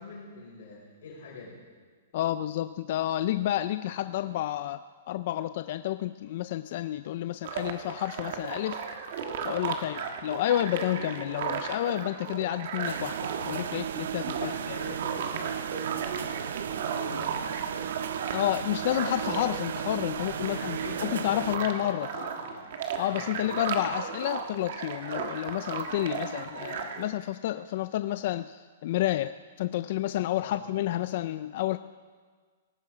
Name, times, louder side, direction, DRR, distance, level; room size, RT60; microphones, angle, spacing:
voice 1, 0.0-1.6 9.7-10.1 14.3-17.9 20.1-22.7 23.1-23.6 30.4-30.6, left 4 dB, 65° left, -4 dB, 5.3 m, -44 dB
voice 2, 2.1-8.8 9.4-14.8 18.3-22.1 23.0-31.8, left 13 dB, 40° left, 12 dB, 0.3 m, -30 dB
sound 1, 7.4-27.1, right 6 dB, 45° right, 1.5 m, -36 dB
sound 2, 12.8-21.6, right 9 dB, 65° right, 0.5 m, -35 dB
18.0 x 14.0 x 4.9 m, 1.6 s
hypercardioid pair, 175°, 0 cm